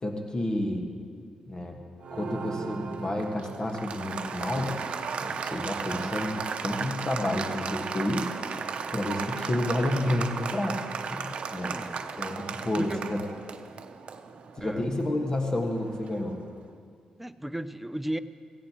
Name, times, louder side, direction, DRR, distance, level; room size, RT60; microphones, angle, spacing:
voice 1, 0.0-0.8 1.5-1.8 2.1-4.8 5.2-8.3 8.9-10.8 11.1-11.8 12.2-13.2 14.6-16.4, left 1 dB, 35° left, 2 dB, 1.5 m, -30 dB
Applause, 2.0-16.4, right 5 dB, 65° right, 0.7 m, -36 dB
voice 2, 11.6-12.0 12.8-13.0 14.6-14.8 17.2-18.2, right 1 dB, 5° right, 12 dB, 0.5 m, -35 dB
16.5 x 15.0 x 3.0 m, 2.1 s
cardioid pair, 75°, 2 cm